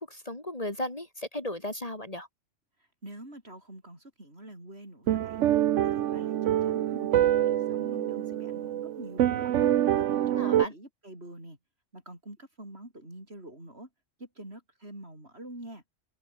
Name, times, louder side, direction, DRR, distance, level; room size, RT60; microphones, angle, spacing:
voice 1, 0.1-2.3 10.4-10.7, left 1 dB, 30° left, 2.6 m, -35 dB
voice 2, 3.0-5.4 5.8-6.3 6.6-9.5 9.9-11.6 11.9-13.9 14.2-15.8, right 1 dB, 60° right, 8.1 m, -45 dB
sound 1, 5.1-10.7, right 12 dB, 80° right, 1.0 m, -26 dB
omnidirectional pair, 1.2 m